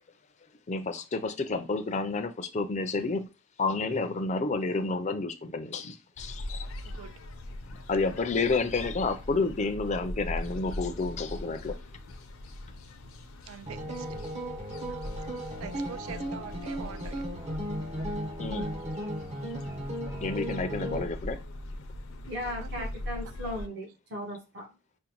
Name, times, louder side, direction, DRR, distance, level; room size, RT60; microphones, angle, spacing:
voice 1, 0.7-3.3 3.6-6.7 7.7-11.7 18.4-18.8 20.2-21.4, left 3 dB, 35° left, 0.4 m, -30 dB
sound 1, 6.2-23.7, left 1 dB, 80° left, 0.6 m, -41 dB
voice 2, 13.5-14.1 15.6-17.2 22.4-22.9, right 8 dB, 80° right, 0.3 m, -44 dB
sound 2, 13.7-21.0, equal, 35° right, 0.7 m, -36 dB
voice 3, 22.3-24.7, left 1 dB, 55° right, 1.1 m, -37 dB
5.1 x 2.1 x 2.9 m
head